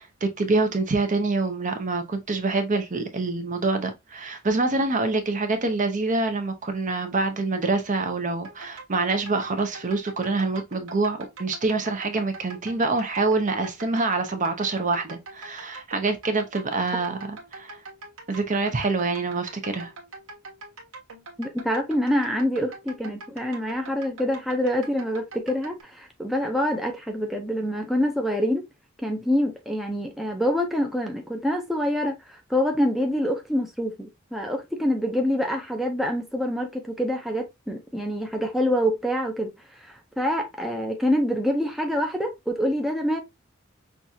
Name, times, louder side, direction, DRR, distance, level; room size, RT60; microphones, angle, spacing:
voice 1, 0.0-17.8 18.3-19.9, right 3 dB, 40° right, 0.7 m, -26 dB
sound 1, 8.4-25.8, right 2 dB, 80° right, 1.4 m, -43 dB
voice 2, 21.4-28.6 29.0-39.5 39.8-43.2, equal, ahead, 0.6 m, -26 dB
5.8 x 2.4 x 2.7 m
head